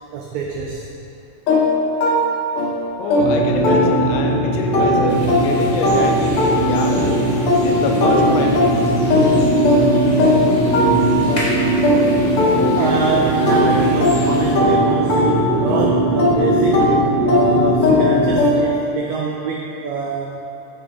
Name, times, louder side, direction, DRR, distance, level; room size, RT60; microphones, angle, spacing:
voice 1, 0.1-0.9 11.2-11.4 12.8-16.9 17.2-20.4, right 4 dB, 85° right, -1 dB, 1.6 m, -24 dB
sound 1, 1.5-4.3 4.7-13.1 13.5-18.9, left 1 dB, 70° left, 1.3 m, -19 dB
voice 2, 3.0-7.1 7.5-8.7, left 4 dB, 85° left, 2 dB, 2.3 m, -25 dB
sound 2, 3.2-18.4, right 1 dB, 65° right, 1.8 m, -19 dB
sound 3, 5.1-14.5, left 2 dB, 40° left, 1.4 m, -31 dB
7.4 x 5.7 x 4.8 m, 2.8 s
omnidirectional pair, 3.9 m